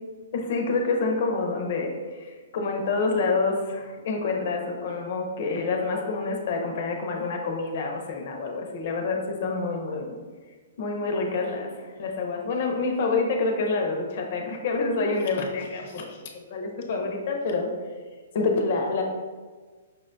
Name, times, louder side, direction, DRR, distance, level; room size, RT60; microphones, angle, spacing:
voice 1, 0.3-10.1 10.8-17.7 18.3-19.0, left 3 dB, 50° left, 2 dB, 0.6 m, -27 dB
5.5 x 2.2 x 2.5 m, 1.4 s
hypercardioid pair, 155°, 0 cm